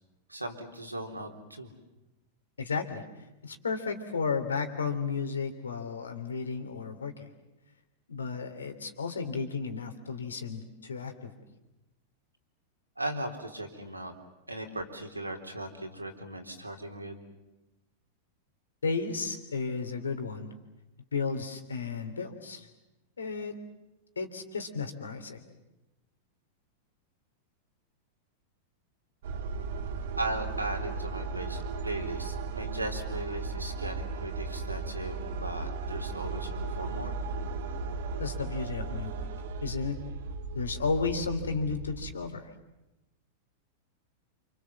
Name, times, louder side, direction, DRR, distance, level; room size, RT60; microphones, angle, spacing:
voice 1, 0.3-1.7 13.0-14.1 14.5-17.2 30.2-37.2, right 1 dB, 90° right, 3 dB, 3.7 m, -37 dB
voice 2, 2.6-3.0 3.4-7.3 8.1-11.3 18.8-20.5 21.1-22.7 23.2-23.6 24.1-25.4 38.2-39.3 39.6-40.0 40.5-42.5, left 4 dB, 75° left, 8 dB, 3.3 m, -33 dB
sound 1, 29.2-42.1, right 3 dB, 60° right, 2.0 m, -36 dB
28.5 x 27.5 x 7.5 m, 0.99 s
figure-of-eight pair, 95°, 0 cm